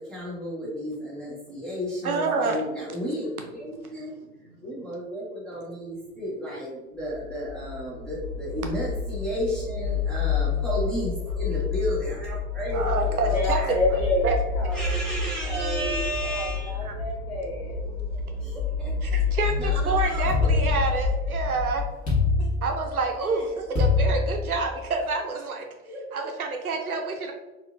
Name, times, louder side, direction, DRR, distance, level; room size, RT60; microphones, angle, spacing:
voice 1, 0.1-4.1 4.6-12.9 13.2-13.8 14.7-16.8 18.4-18.9 19.6-20.5 23.2-23.6 25.8-26.0, equal, ahead, -8 dB, 0.7 m, -33 dB
voice 2, 2.0-2.6 4.0-4.4 12.7-13.6 14.2-14.3 16.8-16.9 19.0-21.8 22.6-25.7 26.1-27.3, right 4 dB, 80° right, 4 dB, 0.7 m, -28 dB
sound 1, 7.1-21.9, left 5 dB, 25° right, 1.1 m, -29 dB
voice 3, 12.8-17.9, left 1 dB, 45° left, -3 dB, 1.4 m, -30 dB
sound 2, 20.3-21.4 22.1-23.1 23.8-24.9, left 3 dB, 20° left, 1.4 m, -24 dB
4.1 x 2.5 x 2.4 m, 1.1 s
figure-of-eight pair, 90°, 43 cm